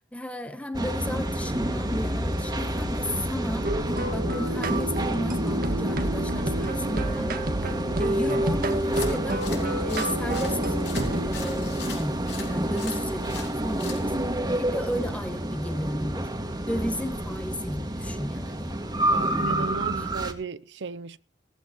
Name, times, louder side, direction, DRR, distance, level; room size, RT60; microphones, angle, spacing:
voice 1, 0.1-3.7 4.1-9.4 9.8-10.8 11.1-12.1 12.4-14.1 14.5-16.3 16.7-18.7 19.1-20.1, equal, 10° left, 1.6 m, -34 dB
sound 1, 0.7-20.3, right 1 dB, 25° right, 2.0 m, -29 dB
sound 2, 3.6-11.3, right 1 dB, 55° right, 1.7 m, -29 dB
sound 3, 8.7-14.3, left 6 dB, 80° left, 5.9 m, -42 dB
voice 2, 19.1-21.2, right 4 dB, 70° right, 0.6 m, -35 dB
18.0 x 14.5 x 3.0 m
head